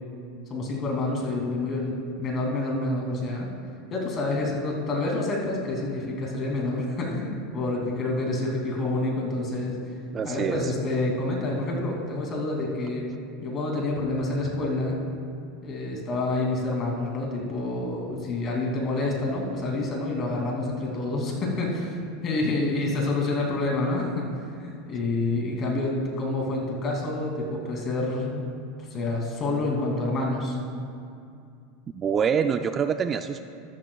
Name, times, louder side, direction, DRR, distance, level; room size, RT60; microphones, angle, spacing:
voice 1, 0.5-3.5 3.9-9.8 10.2-13.1 13.4-15.0 15.6-22.0 22.2-24.3 24.5-28.4 28.9-30.6, left 2 dB, 35° left, -1 dB, 2.6 m, -28 dB
voice 2, 10.1-10.6 31.9-33.4, right 7 dB, 30° right, 9 dB, 0.3 m, -25 dB
13.0 x 11.5 x 2.3 m, 2.4 s
supercardioid pair, 115°, 0 cm